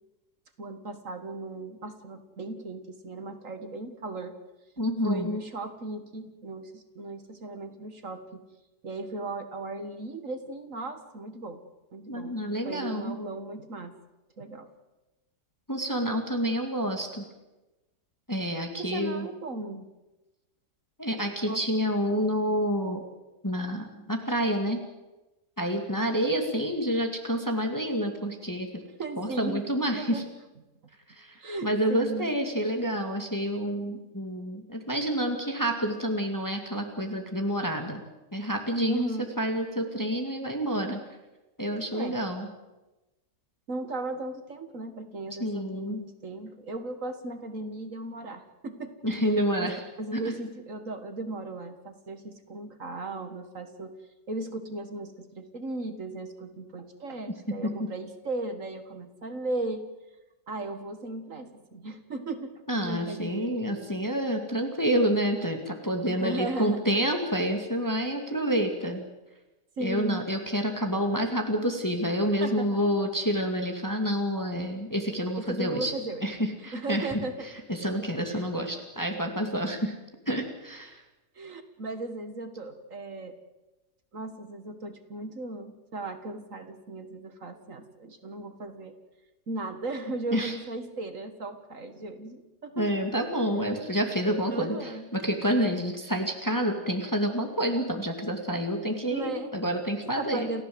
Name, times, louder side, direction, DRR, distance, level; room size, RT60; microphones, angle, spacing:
voice 1, 0.6-4.4 5.0-8.4 8.8-11.6 11.9-12.4 12.6-13.9 14.4-14.7 18.8-19.9 21.5-21.6 29.0-29.7 29.9-30.2 31.4-32.3 38.9-39.3 41.9-42.2 43.7-48.9 49.5-53.9 54.3-59.9 60.5-62.5 62.8-63.6 66.1-66.8 69.8-70.3 70.9-71.2 72.4-72.8 75.4-76.3 76.7-77.5 78.3-78.5 81.4-83.4 84.1-88.9 89.5-92.9 93.3-93.6 94.5-95.1 99.1-99.5 100.2-100.6, right 2 dB, 50° right, 8 dB, 2.0 m, -36 dB
voice 2, 4.8-5.3 12.1-13.2 15.7-17.3 18.3-19.3 21.0-23.0 23.4-24.8 25.6-28.7 29.2-30.2 31.1-38.0 38.3-41.0 41.6-42.5 45.4-46.0 49.0-49.8 50.1-50.3 57.6-57.9 62.7-69.0 69.8-75.9 76.2-77.1 77.7-79.9 80.3-81.0 90.3-90.5 92.8-100.5, equal, 10° left, 4 dB, 2.2 m, -28 dB
29.0 x 15.0 x 7.9 m, 1.1 s
omnidirectional pair, 1.8 m